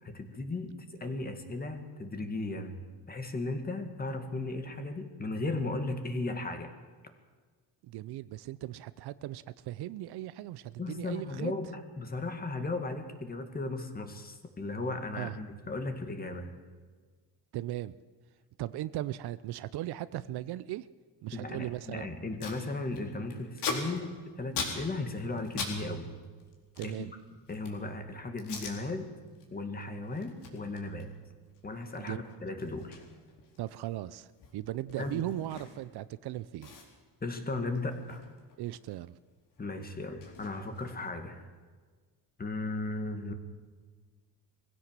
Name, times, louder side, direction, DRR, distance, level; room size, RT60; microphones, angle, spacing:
voice 1, 0.0-6.7 10.8-16.5 21.3-26.2 26.8-27.1 27.5-29.1 29.5-31.2 31.6-33.0 35.0-35.3 37.2-38.2 39.6-41.5 42.4-43.3, left 2 dB, 20° left, 6 dB, 2.1 m, -36 dB
voice 2, 7.8-11.5 15.1-15.4 17.5-18.0 18.6-20.9 21.2-22.1 26.8-27.1 32.0-32.2 33.6-36.7 38.6-39.2, right 14 dB, 65° right, 16 dB, 0.7 m, -38 dB
Packing tape duct tape, 22.1-22.6 22.9-25.8 26.0-27.9 28.4-28.8 29.2-29.5 29.8-36.0 36.3-36.4 36.6-39.0 39.3-41.2, left 5 dB, 70° left, 4.2 m, -42 dB
21.5 x 16.0 x 7.5 m, 1.5 s
cardioid pair, 130°, 42 cm